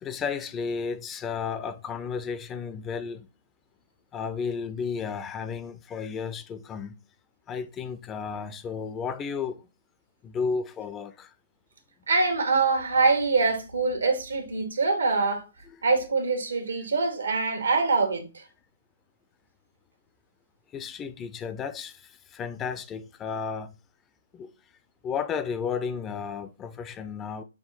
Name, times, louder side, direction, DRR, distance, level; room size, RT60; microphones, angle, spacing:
voice 1, 0.0-3.3 4.1-7.0 7.5-9.6 10.2-11.3 15.7-15.8 20.7-23.7 24.3-24.5 25.0-27.4, left 6 dB, 20° left, 0.4 m, -33 dB
voice 2, 12.1-15.4 15.8-18.4, right 3 dB, 85° right, 1.3 m, -24 dB
5.7 x 2.2 x 4.0 m
hypercardioid pair, 135°, 0 cm